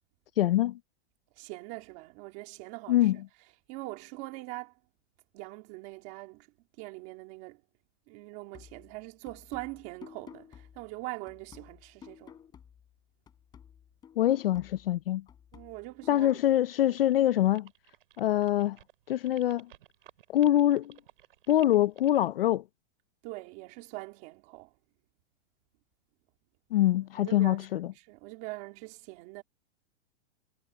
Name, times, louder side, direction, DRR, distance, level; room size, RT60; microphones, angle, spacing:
voice 1, 0.4-0.8 2.9-3.2 14.2-15.2 16.1-17.7 18.2-18.8 19.1-19.7 20.3-21.0 21.5-22.6 26.7-27.9, left 13 dB, 55° left, 0.6 m, -24 dB
voice 2, 1.4-3.1 3.7-4.7 5.3-6.5 6.8-7.6 8.1-12.4 15.5-16.4 16.8-17.0 23.2-24.7 27.1-29.4, right 22 dB, 25° right, 3.1 m, -43 dB
sound 1, 8.5-13.0 13.3-16.5, left 8 dB, 10° left, 3.5 m, -53 dB
sound 2, 16.9-22.3, right 13 dB, 50° right, 6.5 m, -56 dB
supercardioid pair, 180°, 35 cm